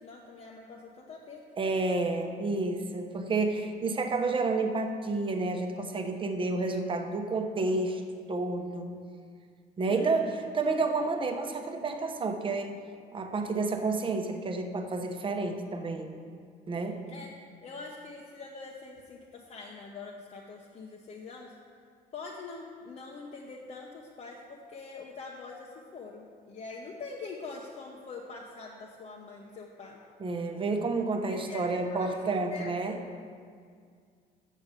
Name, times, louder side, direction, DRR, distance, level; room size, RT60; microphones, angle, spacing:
voice 1, 0.0-2.0 9.9-10.4 17.1-17.3 17.6-21.5 22.1-30.0 31.3-33.0, left 4 dB, 45° left, -1 dB, 0.9 m, -44 dB
voice 2, 1.6-8.0 8.3-8.9 9.8-12.8 13.1-16.2 16.7-17.0 30.2-33.0, right 3 dB, 30° right, 5 dB, 0.9 m, -30 dB
7.4 x 6.9 x 6.7 m, 2.1 s
cardioid pair, 110°, 17 cm